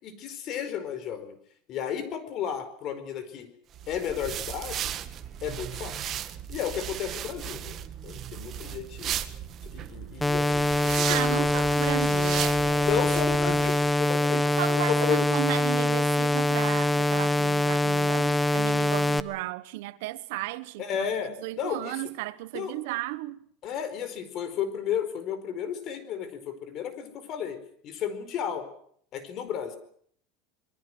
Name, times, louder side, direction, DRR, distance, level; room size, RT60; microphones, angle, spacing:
voice 1, 0.0-1.4 1.7-3.5 3.9-4.9 5.4-6.2 6.5-7.8 8.0-9.1 9.7-11.5 12.8-14.4 14.7-15.3 20.8-22.0 22.5-22.7 23.6-27.6 27.8-28.7 29.1-29.8, left 8 dB, 45° left, 4.7 m, -33 dB
sound 1, 3.7-13.9, right 10 dB, 35° right, 1.6 m, -36 dB
sound 2, 10.2-19.2, left 1 dB, 5° left, 1.0 m, -24 dB
voice 2, 11.1-13.1 14.3-21.1 21.4-23.4, right 19 dB, 80° right, 1.1 m, -34 dB
27.0 x 22.0 x 6.2 m
supercardioid pair, 145°, 0 cm